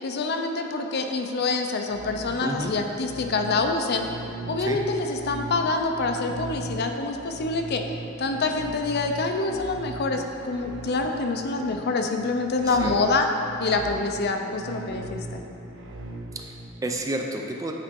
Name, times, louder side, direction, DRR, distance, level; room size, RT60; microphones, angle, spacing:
voice 1, 0.0-4.0 4.5-7.9 8.2-13.3 13.6-15.4, left 3 dB, 50° left, 4 dB, 0.5 m, -26 dB
sound 1, 1.9-16.7, right 2 dB, 60° right, 0.6 m, -39 dB
voice 2, 2.4-2.8 4.6-4.9 12.6-13.0 16.3-17.7, right 1 dB, 15° right, 2 dB, 0.4 m, -31 dB
8.8 x 4.7 x 3.7 m, 2.6 s
head